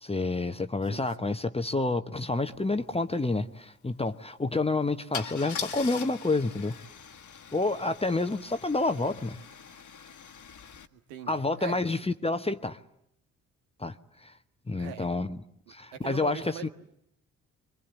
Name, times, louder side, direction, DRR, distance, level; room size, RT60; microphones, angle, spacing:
voice 1, 0.0-6.8 7.5-9.4 11.3-12.8 13.8-14.0 14.2-14.3 14.7-16.7, left 3 dB, 15° left, 1.1 m, -29 dB
voice 2, 0.9-1.3 10.9-11.8 14.8-15.1 15.9-16.7, right 9 dB, 75° right, 1.7 m, -41 dB
Car / Engine starting / Idling, 2.5-2.6 2.9-3.1 5.1-10.9, left 7 dB, 45° left, 1.6 m, -42 dB
26.5 x 23.0 x 8.2 m
figure-of-eight pair, 45°, 43 cm